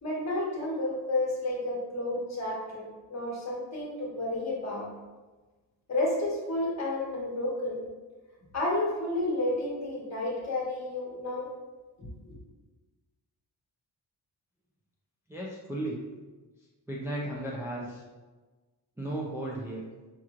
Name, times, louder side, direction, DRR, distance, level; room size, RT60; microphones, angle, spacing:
voice 1, 0.0-4.9 5.9-7.8 8.5-11.5 12.2-12.4, left 2 dB, 40° left, -4 dB, 1.4 m, -31 dB
voice 2, 15.3-16.0 16.9-18.0 19.0-19.8, right 1 dB, 5° right, -5 dB, 0.4 m, -35 dB
5.7 x 2.9 x 2.4 m, 1.3 s
wide cardioid pair, 130°, 42 cm